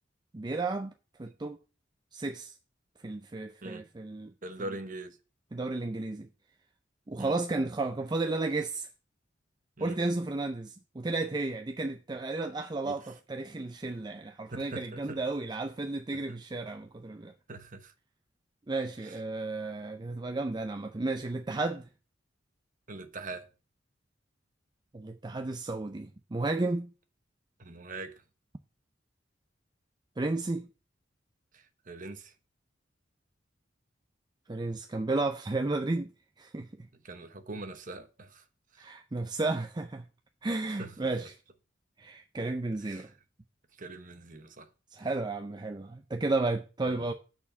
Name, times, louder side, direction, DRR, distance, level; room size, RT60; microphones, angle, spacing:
voice 1, 0.3-0.9 1.2-1.6 2.1-2.5 3.0-4.3 5.5-6.3 7.1-8.9 9.8-13.0 13.3-17.3 18.7-21.9 24.9-26.9 30.2-30.7 34.5-36.1 36.4-36.7 38.8-40.0 40.4-41.3 42.0-43.1 44.9-47.1, right 2 dB, 20° right, 0.5 m, -33 dB
voice 2, 4.4-5.2 7.2-7.4 9.8-10.0 12.8-13.1 14.5-15.2 16.1-16.4 17.5-17.9 19.0-19.2 22.9-23.5 27.6-28.2 31.5-32.3 36.9-38.5 38.7-38.9 40.7-41.1 42.8-43.2 43.8-44.7 45.0-45.1 46.8-47.1, right 2 dB, 45° right, 1.1 m, -43 dB
8.3 x 4.4 x 6.9 m
head